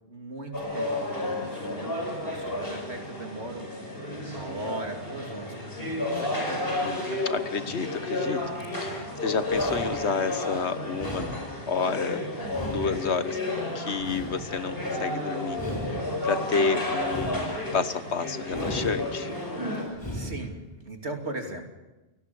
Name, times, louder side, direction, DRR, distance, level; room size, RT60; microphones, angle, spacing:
voice 1, 0.1-0.9 1.2-3.9 4.3-6.8 7.1-7.2 8.4-8.5 8.8-9.3 19.7-21.7, right 2 dB, 80° right, 3 dB, 3.2 m, -39 dB
sound 1, 0.5-19.8, left 1 dB, 60° left, 5.7 m, -32 dB
voice 2, 6.8-11.4 11.7-13.4 13.7-15.6 16.2-19.3, left 5 dB, 85° left, 12 dB, 1.5 m, -30 dB
sound 2, 8.6-9.1 9.4-10.6 10.9-12.1 12.4-13.5 13.9-15.0 15.5-16.6 17.0-18.1 18.5-19.5 19.9-20.6, equal, 25° left, 4.2 m, -38 dB
28.0 x 18.5 x 7.1 m, 1.1 s
omnidirectional pair, 1.1 m